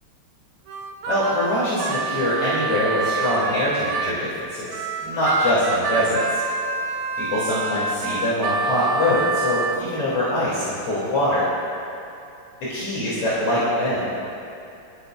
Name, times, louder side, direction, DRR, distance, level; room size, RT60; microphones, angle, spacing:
Harmonica, 0.7-4.2 4.7-9.8, right 4 dB, 85° right, 1.8 m, -27 dB
voice 1, 1.1-6.4 7.2-11.5 12.7-14.1, left 1 dB, 85° left, -9 dB, 4.3 m, -23 dB
24.5 x 15.0 x 2.6 m, 2.7 s
omnidirectional pair, 2.4 m